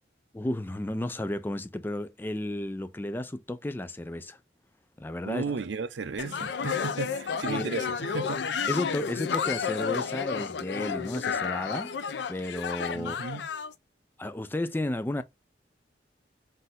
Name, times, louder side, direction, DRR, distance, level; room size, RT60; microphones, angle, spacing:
voice 1, 0.3-4.4 5.0-5.6 7.5-7.7 8.7-11.9 12.3-13.3 14.2-15.2, left 1 dB, 10° left, 0.3 m, -33 dB
voice 2, 5.2-8.4 12.9-13.4, right 4 dB, 80° right, 0.5 m, -34 dB
sound 1, 6.2-13.7, left 6 dB, 75° left, 0.5 m, -31 dB
4.0 x 2.6 x 3.8 m
head